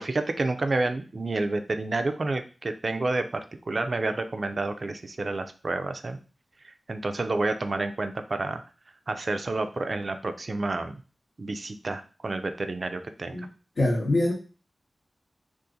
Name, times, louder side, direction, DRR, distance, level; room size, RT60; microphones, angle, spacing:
voice 1, 0.0-3.3 3.7-6.2 6.6-8.6 9.1-11.0 11.4-13.4, right 2 dB, 60° right, 7 dB, 0.4 m, -29 dB
voice 2, 13.8-14.3, left 1 dB, 65° left, -6 dB, 0.9 m, -24 dB
2.7 x 2.5 x 3.7 m, 0.35 s
cardioid pair, 50°, 0 cm